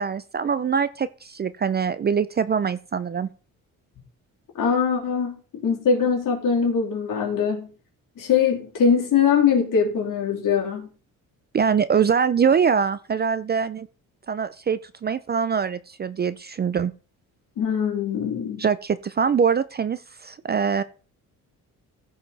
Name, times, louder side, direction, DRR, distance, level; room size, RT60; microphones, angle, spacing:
voice 1, 0.0-3.3 11.5-13.9 14.3-16.9 18.6-20.8, right 6 dB, 30° right, 0.4 m, -23 dB
voice 2, 4.5-5.4 5.6-7.7 8.2-10.9 17.6-18.6, left 6 dB, 65° left, 3.3 m, -22 dB
15.0 x 5.0 x 4.1 m
cardioid pair, 130°, 35 cm